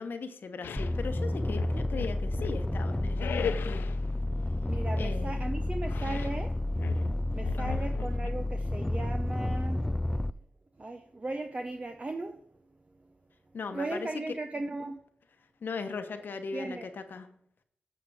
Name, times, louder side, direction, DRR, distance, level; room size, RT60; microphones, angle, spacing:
voice 1, 0.0-3.8 5.0-5.4 7.6-7.7 13.5-14.4 15.6-17.3, left 4 dB, 70° left, 8 dB, 1.0 m, -38 dB
sound 1, 0.6-1.0 1.5-2.7 3.2-4.0 5.9-6.4 6.8-8.3, left 7 dB, 85° left, 0.5 m, -38 dB
sound 2, 0.8-10.3, left 1 dB, 15° left, 0.3 m, -30 dB
voice 2, 4.7-6.5 7.3-9.8 10.8-12.4 13.7-15.0 16.5-16.9, right 2 dB, 35° right, 5 dB, 0.7 m, -37 dB
8.6 x 7.0 x 4.9 m, 0.66 s
cardioid pair, 40°, 4 cm